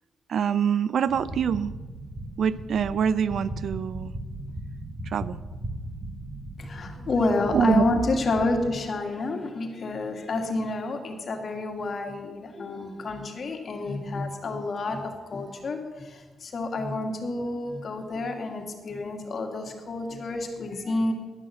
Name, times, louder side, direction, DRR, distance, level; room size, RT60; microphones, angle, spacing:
voice 1, 0.3-1.7 2.4-4.1 5.0-5.4 7.1-7.8, right 7 dB, 65° right, 17 dB, 0.4 m, -25 dB
sound 1, 1.1-8.7, right 1 dB, 30° right, 1.9 m, -38 dB
voice 2, 6.6-21.1, left 2 dB, 50° left, 3 dB, 2.0 m, -29 dB
11.5 x 6.2 x 8.4 m, 1.3 s
cardioid pair, 100°, 0 cm